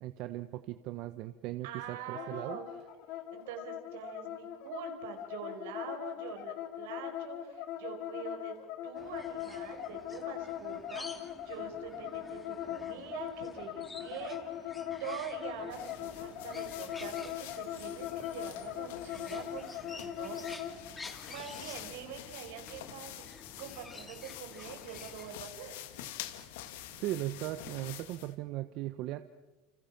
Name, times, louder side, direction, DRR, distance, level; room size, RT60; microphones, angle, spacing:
voice 1, 0.0-2.6 27.0-29.2, right 15 dB, 60° right, 10 dB, 1.1 m, -38 dB
voice 2, 1.6-2.6 3.3-8.5 8.8-14.7 15.0-20.8 21.3-23.2 23.6-25.7, right 8 dB, 85° right, 5 dB, 5.2 m, -45 dB
sound 1, 2.1-20.8, left 11 dB, 60° left, 2.7 m, -40 dB
sound 2, 9.0-25.4, left 3 dB, 15° left, 2.5 m, -51 dB
sound 3, 15.7-28.4, left 12 dB, 80° left, 2.1 m, -47 dB
29.5 x 27.0 x 6.0 m, 1.1 s
supercardioid pair, 125°, 0 cm